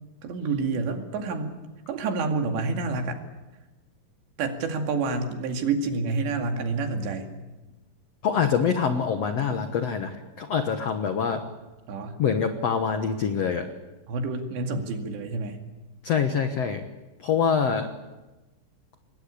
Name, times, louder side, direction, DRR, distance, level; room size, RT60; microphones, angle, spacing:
voice 1, 0.2-1.5 1.9-3.2 4.4-7.3 11.9-12.2 14.1-15.6, right 4 dB, 85° right, 4 dB, 4.5 m, -28 dB
voice 2, 8.2-11.4 12.2-13.7 16.0-16.8 17.2-17.9, left 6 dB, 85° left, 7 dB, 1.4 m, -25 dB
26.5 x 21.0 x 8.5 m, 1.1 s
omnidirectional pair, 4.9 m